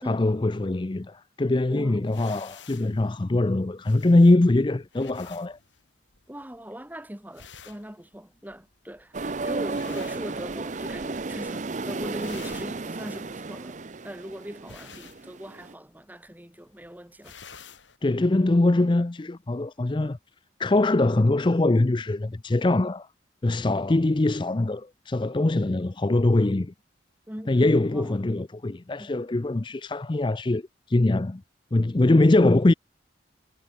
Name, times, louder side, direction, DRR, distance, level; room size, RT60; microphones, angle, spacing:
voice 1, 0.1-5.6 18.0-20.2 20.6-23.1 23.4-26.7 27.5-30.6 30.9-31.4 31.7-32.7, left 2 dB, 25° left, 0.5 m, -22 dB
sound 1, 2.1-11.0 11.3-11.7 12.0-18.0, left 6 dB, 85° left, 4.7 m, -51 dB
voice 2, 6.3-9.2 9.4-13.8 14.0-17.4 27.3-28.2 29.0-29.1, equal, 10° right, 1.8 m, -40 dB
sound 2, 9.1-15.7, right 3 dB, 40° right, 0.7 m, -33 dB
head